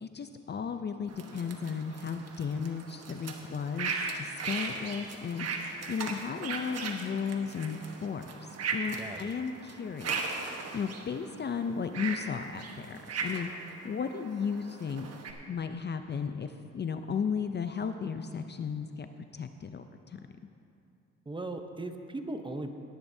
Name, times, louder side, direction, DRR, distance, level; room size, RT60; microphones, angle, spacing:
voice 1, 0.0-15.1 15.5-19.1 19.3-20.2, left 6 dB, 35° left, 8 dB, 0.5 m, -35 dB
sound 1, 1.1-15.3, right 4 dB, 55° right, 1.2 m, -38 dB
voice 2, 8.9-9.3 21.3-22.7, right 2 dB, 15° right, 6 dB, 0.8 m, -38 dB
18.5 x 10.5 x 2.7 m, 2.6 s
cardioid pair, 90°, 30 cm